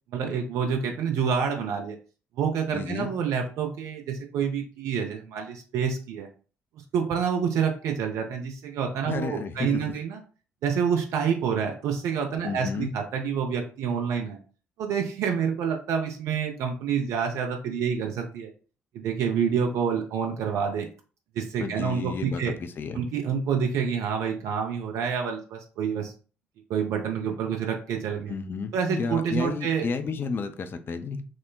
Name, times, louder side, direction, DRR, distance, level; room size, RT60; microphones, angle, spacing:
voice 1, 0.1-1.9 2.4-6.3 6.9-10.2 10.6-14.4 14.8-18.5 18.9-20.9 21.4-22.5 22.9-26.1 26.7-28.3 28.7-29.8, right 7 dB, 55° right, 3 dB, 0.6 m, -28 dB
voice 2, 2.7-3.1 9.1-9.8 12.4-12.9 21.6-23.0 28.3-31.3, left 5 dB, 35° left, 7 dB, 0.5 m, -32 dB
6.2 x 2.1 x 2.3 m, 0.38 s
figure-of-eight pair, 45°, 6 cm